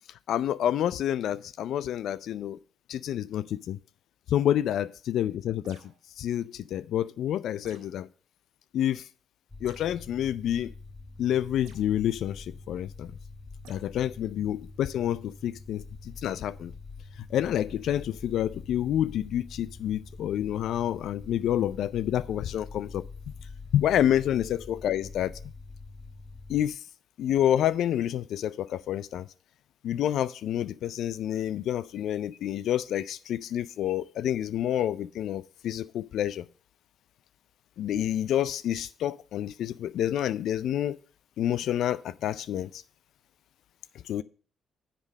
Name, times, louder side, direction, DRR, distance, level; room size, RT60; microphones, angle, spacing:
voice 1, 0.3-2.6 2.9-3.8 4.3-5.8 6.2-8.1 8.7-9.0 9.6-10.7 11.2-13.1 13.7-16.7 17.3-23.0 23.7-25.3 26.5-26.8 27.2-29.3 29.8-36.4 37.8-41.0 41.4-42.7 44.1-44.2, left 11 dB, 70° left, 0.4 m, -28 dB
sound 1, 5.6-6.1 7.6-8.0 9.6-9.9 11.6-11.9 13.6-13.8, right 5 dB, 80° right, 1.6 m, -54 dB
sound 2, 9.5-26.7, left 3 dB, 20° left, 1.0 m, -45 dB
7.5 x 5.1 x 6.2 m
hypercardioid pair, 50°, 0 cm